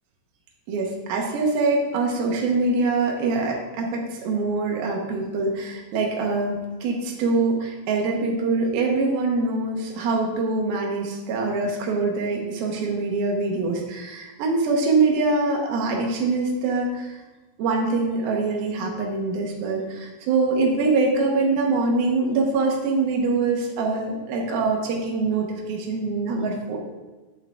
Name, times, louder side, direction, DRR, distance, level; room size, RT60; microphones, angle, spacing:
voice 1, 0.7-17.1 17.6-26.8, right 3 dB, 80° right, -1 dB, 2.9 m, -24 dB
9.0 x 6.3 x 3.6 m, 1.2 s
omnidirectional pair, 4.3 m